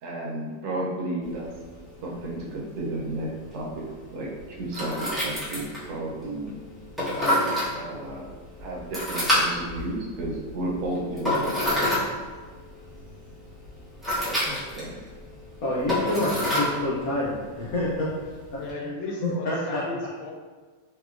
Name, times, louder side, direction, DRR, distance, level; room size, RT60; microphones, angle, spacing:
voice 1, 0.0-1.5 2.0-3.8 4.1-4.3 4.6-6.6 7.7-8.3 8.6-12.1 14.2-15.0, right 1 dB, 75° right, -3 dB, 1.3 m, -33 dB
sound 1, 1.2-18.7, left 1 dB, ahead, 0.4 m, -30 dB
voice 2, 15.6-18.1 18.5-18.9 19.2-19.9, left 1 dB, 70° left, -6 dB, 0.9 m, -28 dB
voice 3, 18.6-20.3, left 2 dB, 85° left, 0 dB, 1.4 m, -35 dB
3.7 x 2.8 x 2.4 m, 1.4 s
omnidirectional pair, 2.1 m